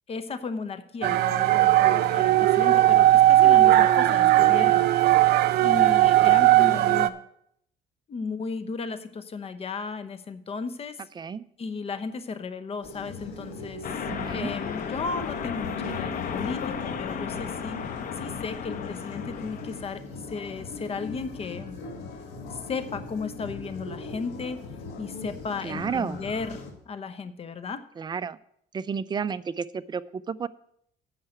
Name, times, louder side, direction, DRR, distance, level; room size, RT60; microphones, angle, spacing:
voice 1, 0.1-5.3 5.6-7.2 8.1-11.0 11.6-13.9 14.2-17.8 18.2-20.0 20.3-21.8 22.5-24.6 25.0-27.8, left 4 dB, 35° left, 11 dB, 0.9 m, -35 dB
sound 1, 1.0-7.1, right 15 dB, 75° right, 0.6 m, -18 dB
sound 2, 12.8-26.7, left 3 dB, 85° left, 1.7 m, -40 dB
sound 3, 13.8-19.9, left 7 dB, 55° left, 1.1 m, -34 dB
voice 2, 14.0-14.5 25.6-26.2 28.0-28.4 28.7-30.5, right 6 dB, 25° right, 14 dB, 0.4 m, -31 dB
8.8 x 5.7 x 7.8 m, 0.71 s
cardioid pair, 110°, 17 cm